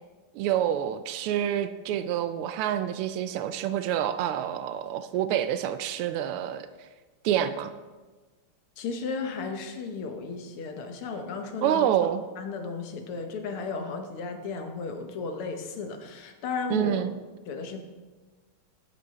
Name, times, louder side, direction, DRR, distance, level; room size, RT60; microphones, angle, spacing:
voice 1, 0.3-6.7 7.2-7.7 11.6-12.2 16.7-17.1, right 10 dB, 85° right, 11 dB, 1.5 m, -27 dB
voice 2, 8.8-11.9 12.4-17.1 17.5-17.8, left 4 dB, 85° left, 6 dB, 2.0 m, -34 dB
13.5 x 8.6 x 3.6 m, 1.3 s
omnidirectional pair, 2.4 m